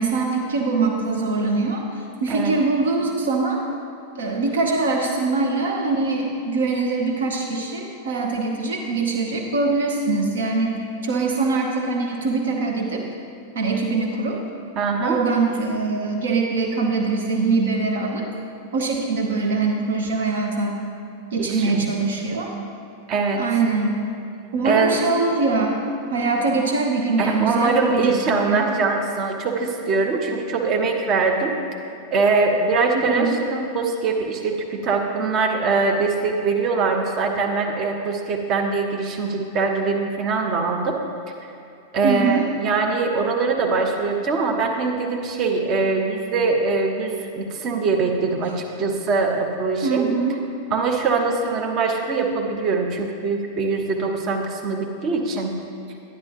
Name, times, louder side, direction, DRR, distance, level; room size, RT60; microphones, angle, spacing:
voice 1, 0.0-1.8 2.2-3.6 4.2-13.0 13.5-14.4 15.0-18.3 18.7-20.8 21.3-22.5 23.3-24.0 24.5-28.7 33.0-33.4 42.0-42.5 49.8-50.4, right 3 dB, 65° right, 1 dB, 0.8 m, -23 dB
voice 2, 14.8-15.2 21.4-21.8 23.1-23.4 24.6-25.0 27.2-31.6 32.1-41.0 41.9-50.0 50.7-55.5, right 4 dB, 35° right, 2 dB, 1.0 m, -22 dB
10.5 x 10.5 x 2.9 m, 2.5 s
figure-of-eight pair, 90°, 0 cm